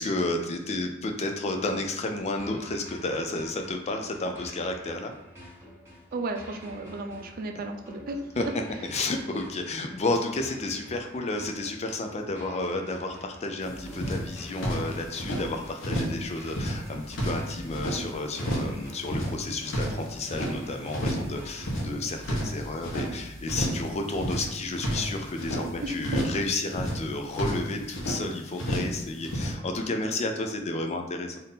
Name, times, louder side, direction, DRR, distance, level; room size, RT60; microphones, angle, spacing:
voice 1, 0.0-5.1 8.4-8.5 8.9-31.4, left 2 dB, 30° left, 4 dB, 0.4 m, -31 dB
sound 1, 2.4-22.4, equal, 15° right, 1.4 m, -48 dB
voice 2, 6.1-8.5 25.8-26.2, right 2 dB, 45° right, 4 dB, 0.4 m, -34 dB
sound 2, 13.6-13.7 13.9-15.4 15.8-16.2 16.5-18.0 18.3-18.8 19.0-20.5 20.9-21.3 21.6-23.1 23.4-23.9 24.1-25.6 26.0-26.4 26.7-28.2 28.6-29.0 29.2-29.5, equal, 65° left, 0.9 m, -31 dB
sound 3, 13.6-14.4 14.7-20.0 20.3-21.8 22.0-26.5, right 1 dB, 15° left, 1.2 m, -47 dB
3.6 x 2.6 x 4.0 m, 0.94 s
head